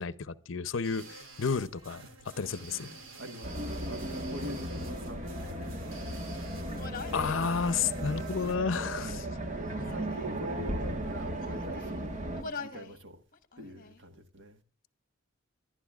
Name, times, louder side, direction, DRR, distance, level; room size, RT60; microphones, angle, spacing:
voice 1, 0.0-2.0 2.4-2.9 7.1-9.3, left 5 dB, 65° left, 0.6 m, -31 dB
sound 1, 0.8-8.6, right 3 dB, 85° right, 2.4 m, -50 dB
voice 2, 1.9-2.3 2.7-3.6 3.8-6.6 7.1-7.5 8.9-9.2 9.9-12.2 12.4-13.2 13.6-14.6, equal, 60° right, 1.5 m, -45 dB
sound 2, 3.4-12.4, right 1 dB, 40° right, 1.4 m, -36 dB
Human voice, 6.6-7.4 8.3-9.3 9.7-10.4 11.0-12.0 12.4-13.0 13.3-14.0, left 4 dB, 45° left, 1.1 m, -44 dB
24.0 x 11.5 x 2.4 m
head